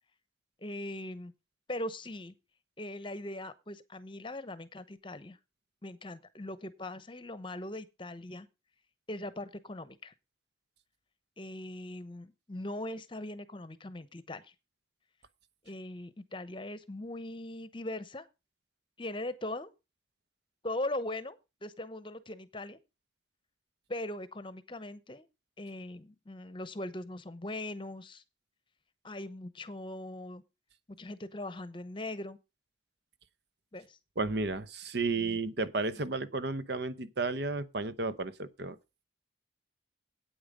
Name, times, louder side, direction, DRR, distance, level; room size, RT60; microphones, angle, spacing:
voice 1, 0.6-1.3 1.7-2.3 2.8-5.4 5.8-8.5 9.1-10.1 11.4-14.5 15.6-18.3 19.0-19.7 20.6-22.8 23.9-25.3 25.6-28.2 29.0-30.4 31.0-32.4 33.7-34.0 35.1-35.4 35.9-36.0, left 1 dB, 25° left, 0.8 m, -40 dB
voice 2, 34.2-38.8, right 3 dB, 60° right, 0.8 m, -33 dB
8.8 x 8.8 x 5.0 m
head